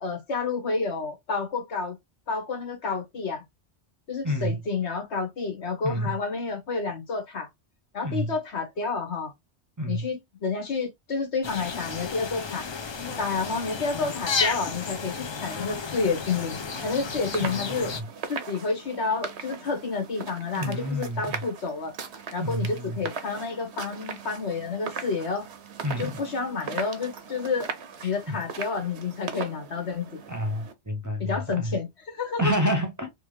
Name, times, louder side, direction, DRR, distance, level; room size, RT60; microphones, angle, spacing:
voice 1, 0.0-2.0 2.3-3.4 4.1-7.5 7.9-9.3 9.9-12.6 13.2-16.6 16.8-17.9 18.3-21.9 22.3-25.4 26.0-27.7 28.0-30.1 31.2-32.5, left 4 dB, 85° left, 1.6 m, -30 dB
voice 2, 4.2-4.6 5.8-6.1 8.0-8.3 9.8-10.1 17.4-18.0 20.5-21.4 22.4-23.0 25.8-26.2 28.0-28.1 30.3-31.8 32.4-33.1, equal, 20° right, 0.6 m, -29 dB
sound 1, 11.4-18.0, left 5 dB, 40° left, 0.4 m, -32 dB
sound 2, 14.7-30.7, right 6 dB, 80° right, 1.1 m, -40 dB
3.4 x 2.9 x 3.2 m
omnidirectional pair, 1.1 m